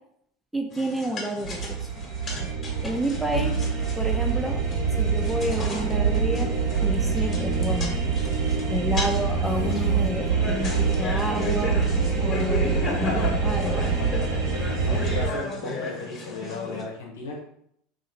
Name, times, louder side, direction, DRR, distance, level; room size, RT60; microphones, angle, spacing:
voice 1, 0.5-2.1 2.8-3.5 4.0-4.6 5.0-6.5 6.8-8.0 8.7-11.8 12.2-13.8 14.9-15.1, equal, 5° right, 3 dB, 0.6 m, -30 dB
sound 1, 0.7-16.8, left 3 dB, 35° left, 1.2 m, -35 dB
sound 2, 1.4-15.3, right 5 dB, 70° right, 1.2 m, -25 dB
voice 2, 3.3-3.6 9.0-9.2 14.5-17.4, left 3 dB, 85° left, 0 dB, 0.9 m, -35 dB
2.7 x 2.7 x 4.3 m, 0.71 s
hypercardioid pair, 85°, 0 cm